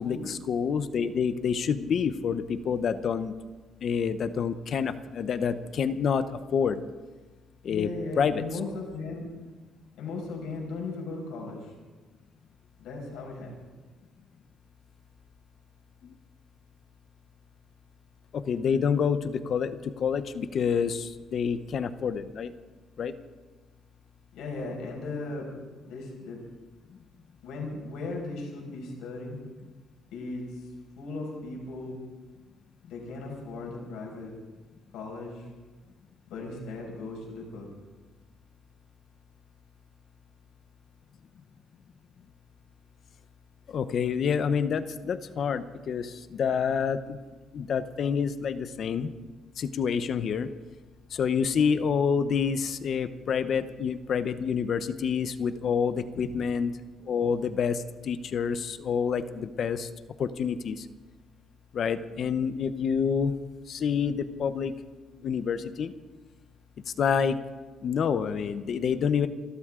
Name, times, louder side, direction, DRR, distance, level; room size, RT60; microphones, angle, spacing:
voice 1, 0.0-3.3 3.8-6.2 6.5-6.8 7.6-7.9 8.2-8.4 16.0-16.2 18.3-22.5 23.0-23.1 43.7-47.2 47.5-49.1 49.6-50.5 51.1-56.7 57.0-59.9 60.2-60.9 61.7-63.3 63.7-64.7 65.2-65.9 67.0-67.4 67.8-69.3, left 6 dB, 45° left, 11 dB, 0.8 m, -28 dB
voice 2, 7.7-9.3 10.0-11.7 12.8-13.5 24.3-25.5 25.9-26.4 27.4-29.4 30.1-30.6 31.0-32.0 32.8-34.3 34.9-35.5 36.3-37.8 56.1-56.3, left 3 dB, 90° left, -1 dB, 5.4 m, -37 dB
28.0 x 13.0 x 3.8 m, 1.3 s
cardioid pair, 155°, 0 cm